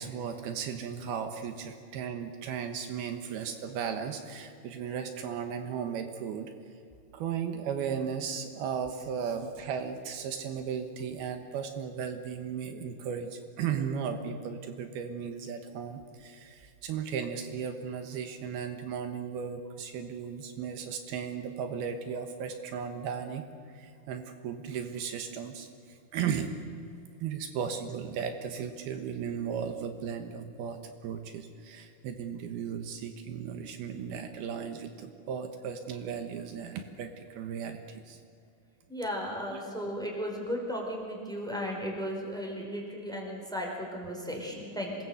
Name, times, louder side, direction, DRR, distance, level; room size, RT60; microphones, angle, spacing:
voice 1, 0.0-6.7 7.1-26.5 27.2-38.2 39.5-39.6, right 7 dB, 80° right, 7 dB, 3.2 m, -36 dB
voice 2, 38.9-45.0, equal, ahead, 0 dB, 4.1 m, -35 dB
26.5 x 20.0 x 7.9 m, 2.4 s
omnidirectional pair, 4.5 m